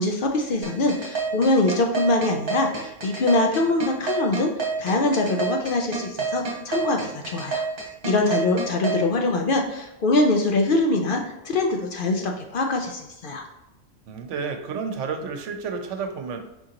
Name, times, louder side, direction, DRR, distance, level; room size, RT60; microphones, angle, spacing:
voice 1, 0.0-4.5 4.8-7.6 8.0-13.5, left 2 dB, 60° left, 3 dB, 0.6 m, -23 dB
sound 1, 0.6-9.0, right 5 dB, 50° right, 1.2 m, -27 dB
voice 2, 14.1-16.4, right 5 dB, 85° right, 6 dB, 1.0 m, -31 dB
4.5 x 3.7 x 2.9 m, 0.93 s
omnidirectional pair, 1.2 m